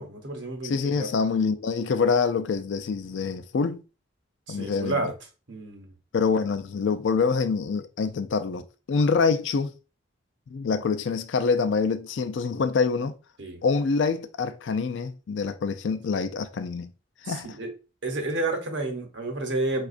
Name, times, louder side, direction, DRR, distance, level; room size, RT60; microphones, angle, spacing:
voice 1, 0.0-1.1 4.5-5.1 5.5-5.9 13.4-13.6 17.2-17.7 18.0-19.9, right 2 dB, 70° right, 0.9 m, -30 dB
voice 2, 0.6-3.8 4.5-5.1 6.1-9.7 10.5-13.2 13.6-16.9 17.2-17.6, left 5 dB, 70° left, 0.4 m, -26 dB
4.8 x 2.3 x 2.5 m
head